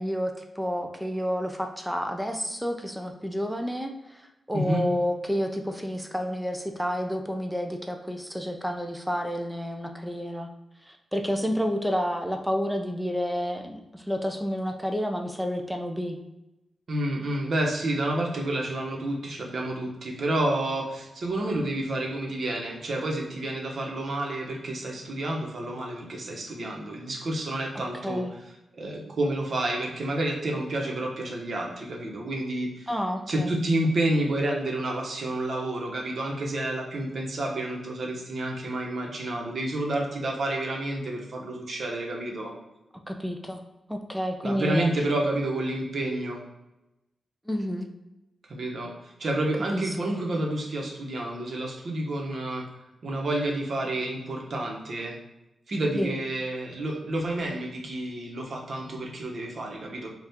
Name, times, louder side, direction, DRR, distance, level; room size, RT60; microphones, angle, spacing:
voice 1, 0.0-10.5 10.8-16.2 28.0-28.3 32.9-33.5 43.1-43.6 43.9-44.9 47.5-47.9 49.7-50.0 56.0-56.2, equal, 5° right, 4 dB, 0.4 m, -30 dB
voice 2, 4.5-4.9 16.9-28.2 28.8-32.9 33.3-42.5 44.4-46.4 48.5-52.6 53.0-55.2 55.7-60.1, right 1 dB, 60° right, -1 dB, 0.9 m, -29 dB
4.2 x 2.4 x 3.5 m, 0.95 s
cardioid pair, 90°, 0 cm